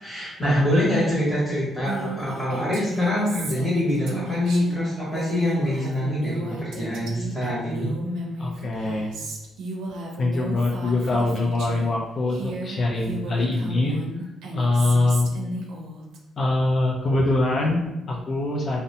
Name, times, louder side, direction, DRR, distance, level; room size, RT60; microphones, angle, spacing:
voice 1, 0.0-7.9, left 1 dB, 5° left, -8 dB, 0.9 m, -24 dB
Female speech woman speaking, 1.8-11.9 12.3-16.2, right 1 dB, 90° right, 0.5 m, -34 dB
voice 2, 8.4-9.1 10.2-14.0 14.5-15.3 16.4-18.8, left 2 dB, 50° left, -2 dB, 0.4 m, -23 dB
2.6 x 2.0 x 2.8 m, 0.95 s
cardioid pair, 90°, 0 cm